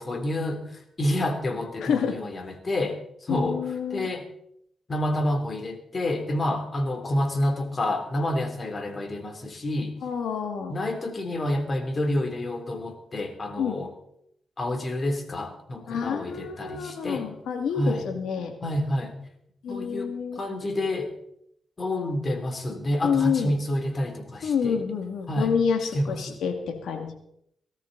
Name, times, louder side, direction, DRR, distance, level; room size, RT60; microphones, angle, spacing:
voice 1, 0.0-3.6 3.9-4.2 4.9-10.0 10.7-13.9 14.6-17.3 17.7-18.1 18.6-19.1 19.7-21.1 21.8-24.8 25.3-25.5 25.9-26.4, left 1 dB, 45° left, 6 dB, 3.2 m, -28 dB
voice 2, 1.8-2.2 3.3-4.1 10.0-10.8 13.6-13.8 15.9-18.5 19.6-20.4 23.0-23.5 24.4-27.1, left 6 dB, 80° left, 5 dB, 2.4 m, -28 dB
18.0 x 13.5 x 4.1 m, 0.74 s
supercardioid pair, 55°, 0 cm